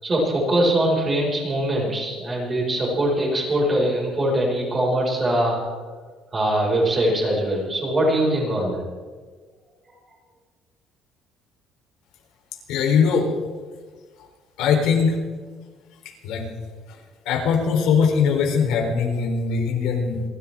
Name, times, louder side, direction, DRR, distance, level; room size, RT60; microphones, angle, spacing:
voice 1, 0.0-5.9 6.3-8.8, right 1 dB, 20° right, -3 dB, 5.5 m, -22 dB
voice 2, 12.7-13.3 14.6-15.2 16.0-16.5 16.9-17.0 17.3-20.2, left 6 dB, 80° left, 1 dB, 3.7 m, -21 dB
28.0 x 12.5 x 3.6 m, 1.5 s
cardioid pair, 165°, 0 cm